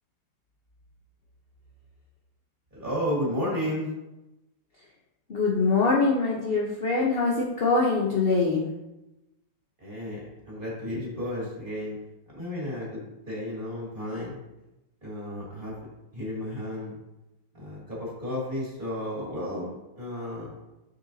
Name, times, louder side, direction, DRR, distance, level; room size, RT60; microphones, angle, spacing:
voice 1, 2.7-3.9 9.8-12.0 12.3-14.4 15.0-15.7 16.1-16.9 17.5-20.5, left 1 dB, 25° right, -5 dB, 2.3 m, -33 dB
voice 2, 5.3-8.7, left 3 dB, 55° left, -3 dB, 0.6 m, -23 dB
6.8 x 5.8 x 2.7 m, 0.98 s
omnidirectional pair, 2.1 m